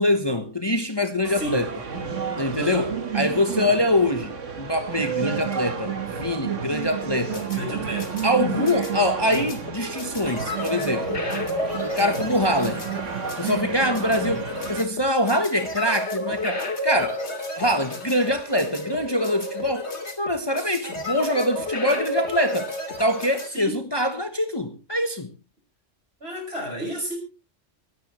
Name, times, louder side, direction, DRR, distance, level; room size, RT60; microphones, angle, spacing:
voice 1, 0.0-1.7 2.4-7.5 8.2-11.2 11.8-12.9 13.4-17.2 17.6-19.9 20.2-22.7 23.0-25.3, left 1 dB, 20° left, 1.2 m, -24 dB
sound 1, 1.2-14.8, right 7 dB, 85° right, 1.9 m, -31 dB
voice 2, 1.3-1.7 2.5-2.9 7.5-8.7 20.6-20.8 23.5-23.8 26.2-27.2, right 1 dB, 55° right, 5.7 m, -32 dB
sound 2, 7.0-23.5, left 1 dB, 65° left, 3.0 m, -31 dB
25.0 x 9.7 x 3.2 m
omnidirectional pair, 1.2 m